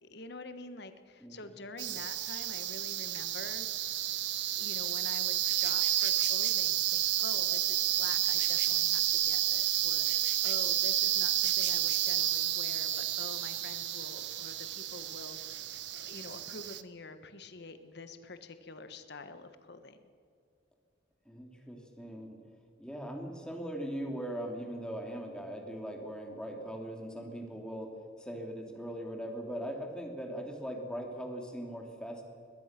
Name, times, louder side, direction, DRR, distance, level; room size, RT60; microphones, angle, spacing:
voice 1, 0.0-4.0 4.5-15.7 15.9-20.0, left 3 dB, 60° left, 10 dB, 1.4 m, -47 dB
sound 1, 1.8-16.8, right 13 dB, 70° right, 0.9 m, -31 dB
voice 2, 21.3-22.4 22.8-32.2, equal, 5° left, 2 dB, 2.9 m, -40 dB
22.0 x 20.5 x 6.1 m, 2.2 s
head